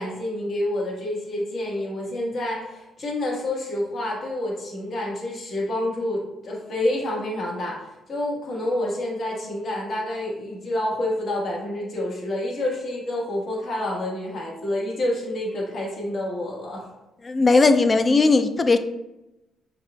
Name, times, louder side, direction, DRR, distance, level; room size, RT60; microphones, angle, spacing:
voice 1, 0.0-7.8 8.1-16.8, left 1 dB, 55° left, -3 dB, 1.3 m, -28 dB
voice 2, 17.2-18.8, left 3 dB, 30° left, 9 dB, 0.3 m, -17 dB
5.7 x 2.5 x 2.2 m, 0.95 s
cardioid pair, 90°, 0 cm